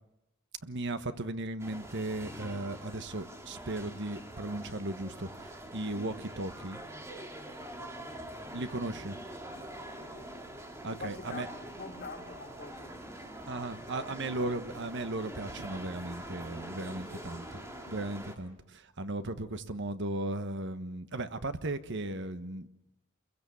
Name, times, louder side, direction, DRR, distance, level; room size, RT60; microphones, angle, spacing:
voice 1, 0.6-6.8 8.5-9.2 10.8-11.5 13.5-17.6 17.9-22.7, right 2 dB, 55° right, 10 dB, 1.3 m, -36 dB
sound 1, 1.6-18.4, right 1 dB, 15° right, 2.4 m, -45 dB
voice 2, 7.7-8.2 9.9-13.0 17.1-17.9, left 3 dB, 45° left, 0 dB, 4.3 m, -47 dB
29.0 x 22.5 x 7.1 m, 0.87 s
head